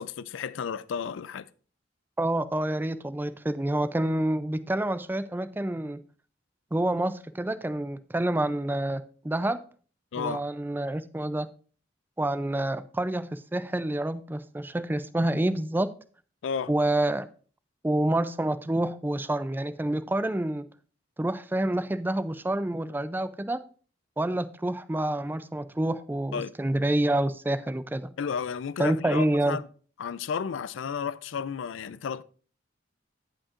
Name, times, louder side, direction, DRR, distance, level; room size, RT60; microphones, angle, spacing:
voice 1, 0.0-1.5 10.1-10.4 16.4-16.7 26.3-26.5 28.2-29.6 30.0-32.2, left 6 dB, 80° left, 0.4 m, -32 dB
voice 2, 2.2-6.0 6.7-9.6 10.2-11.5 12.2-15.9 16.7-17.3 17.8-20.7 21.2-23.6 24.2-28.1 28.8-29.6, right 1 dB, 10° right, 0.4 m, -28 dB
15.5 x 5.3 x 2.5 m
head